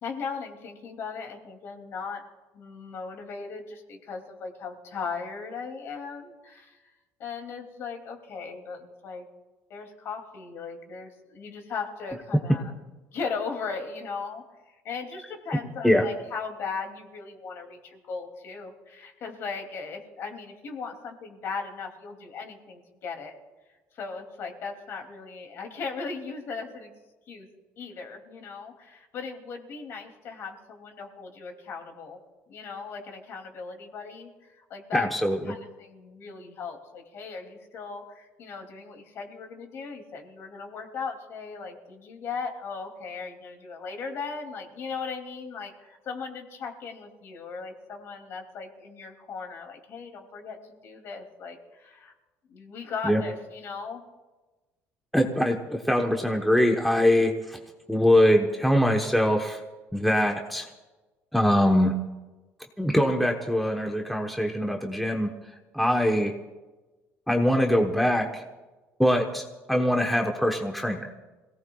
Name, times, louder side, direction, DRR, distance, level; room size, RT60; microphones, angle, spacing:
voice 1, 0.0-2.2 2.5-6.8 7.2-9.3 9.7-12.7 13.1-23.4 23.9-26.9 27.3-27.5 27.8-32.2 32.5-35.1 35.5-52.1 52.5-54.0 65.8-66.0, left 5 dB, 50° left, 4 dB, 2.7 m, -38 dB
voice 2, 34.9-35.5 53.0-53.2 55.1-57.6 57.9-59.6 59.9-60.7 61.3-61.9 62.8-65.3 65.7-66.3 67.3-68.4 69.0-71.1, equal, ahead, 2 dB, 1.0 m, -23 dB
26.0 x 17.5 x 2.4 m, 1.2 s
cardioid pair, 140°, 5 cm